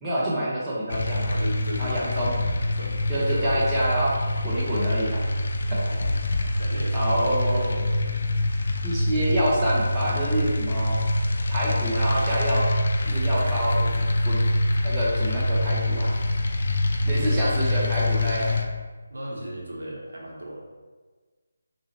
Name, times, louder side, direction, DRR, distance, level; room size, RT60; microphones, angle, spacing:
voice 1, 0.0-1.3 1.8-2.4 3.1-4.1 4.4-5.2 6.9-7.9 8.8-11.0 11.5-12.7 13.0-13.9 14.3-14.5 14.8-16.1 17.0-18.6, right 1 dB, 10° right, -9 dB, 0.6 m, -27 dB
sound 1, 0.9-18.7, left 1 dB, 50° left, 0.3 m, -25 dB
voice 2, 1.3-2.2 2.7-3.6 5.8-6.2 6.6-7.5 17.1-17.4 19.1-20.6, right 1 dB, 65° right, -3 dB, 0.9 m, -36 dB
3.6 x 3.1 x 2.8 m, 1.4 s
figure-of-eight pair, 150°, 0 cm